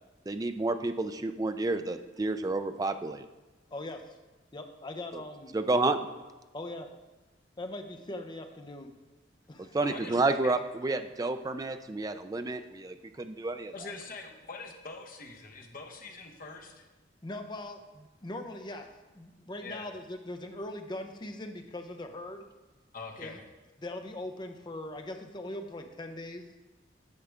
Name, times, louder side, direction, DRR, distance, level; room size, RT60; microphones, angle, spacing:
voice 1, 0.3-3.3 5.1-5.2 5.5-6.0 9.6-13.7, right 2 dB, 20° right, 9 dB, 0.4 m, -30 dB
voice 2, 3.7-4.1 4.5-5.5 6.5-6.9 7.6-8.9 9.5-9.8 17.2-17.8 18.2-18.9 19.1-22.4 23.2-23.4 23.8-26.4, left 1 dB, 25° left, 5 dB, 0.6 m, -40 dB
voice 3, 9.8-10.5 13.7-16.9 19.6-19.9 22.9-23.5, left 3 dB, 45° left, 3 dB, 1.0 m, -44 dB
9.6 x 6.6 x 3.4 m, 1.2 s
head